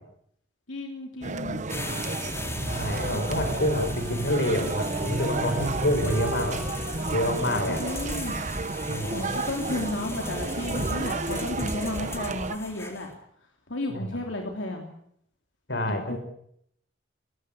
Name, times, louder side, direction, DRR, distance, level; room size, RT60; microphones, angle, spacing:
voice 1, 0.7-1.6 7.8-8.4 9.1-13.1 13.7-14.9 15.9-16.2, left 2 dB, 90° left, 2 dB, 3.3 m, -33 dB
sound 1, 1.2-12.6, right 3 dB, 40° right, 1.1 m, -31 dB
sound 2, 1.7-13.1, left 1 dB, 15° left, 3.9 m, -38 dB
voice 2, 2.6-6.6 7.1-7.9 8.9-9.3 13.9-14.2 15.7-16.2, left 1 dB, 65° left, 8 dB, 5.3 m, -28 dB
Wind instrument woodwind instrument, 2.9-9.8, equal, 10° right, 5.8 m, -43 dB
21.5 x 18.0 x 8.7 m, 0.69 s
head